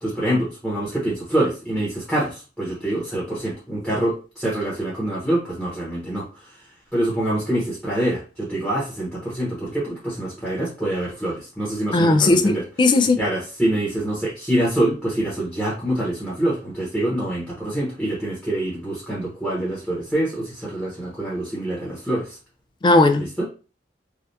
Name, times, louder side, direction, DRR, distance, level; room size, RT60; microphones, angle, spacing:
voice 1, 0.0-6.3 6.9-12.6 13.2-22.4 23.2-23.4, right 1 dB, ahead, 1.0 m, -25 dB
voice 2, 11.9-13.2 22.8-23.2, left 2 dB, 25° left, 0.3 m, -17 dB
3.3 x 2.4 x 2.7 m
head